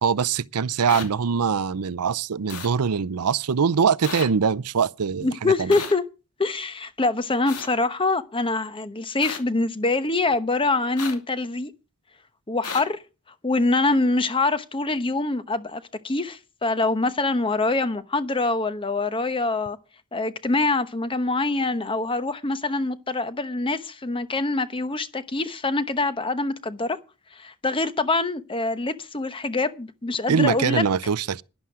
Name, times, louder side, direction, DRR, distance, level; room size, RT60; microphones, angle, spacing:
voice 1, 0.0-5.8 30.3-31.4, right 6 dB, 90° right, 0.6 m, -23 dB
sound 1, 0.9-1.0 2.5-2.7 4.0-4.3 5.7-5.9 7.5-7.7 9.2-9.4 11.0-11.1 12.6-12.8, left 5 dB, 80° left, 2.6 m, -33 dB
voice 2, 5.2-6.0 6.4-11.7 12.5-13.0 13.4-19.8 20.1-27.0 27.4-30.8, left 3 dB, 25° left, 0.9 m, -24 dB
11.5 x 11.0 x 5.0 m
head